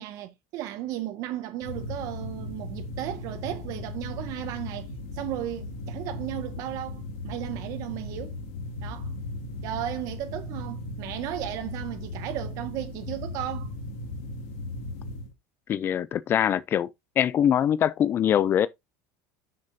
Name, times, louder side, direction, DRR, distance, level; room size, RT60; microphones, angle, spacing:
voice 1, 0.0-4.9 5.1-8.4 8.8-9.1 9.6-13.7, right 13 dB, 55° right, 1.9 m, -35 dB
sound 1, 1.6-15.3, left 2 dB, 75° left, 2.4 m, -37 dB
voice 2, 15.7-16.9 17.2-18.7, left 9 dB, 30° left, 0.5 m, -23 dB
10.5 x 6.6 x 2.8 m
supercardioid pair, 140°, 7 cm